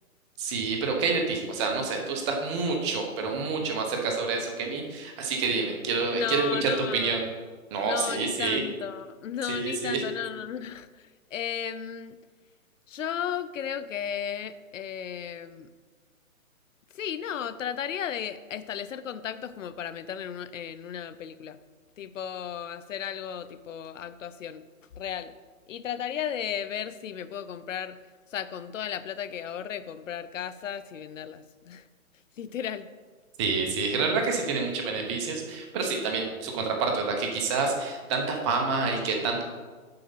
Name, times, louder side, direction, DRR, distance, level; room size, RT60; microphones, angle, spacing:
voice 1, 0.4-7.2 7.7-8.6 9.4-10.0 33.4-39.4, right 4 dB, 20° right, 2 dB, 0.9 m, -28 dB
voice 2, 6.1-7.1 7.8-12.2 12.9-15.7 16.9-21.6 22.0-24.6 25.0-25.3 25.7-28.0 28.3-31.9 32.4-32.9, left 9 dB, 60° left, 14 dB, 0.6 m, -35 dB
7.7 x 4.9 x 5.6 m, 1.4 s
hypercardioid pair, 150°, 42 cm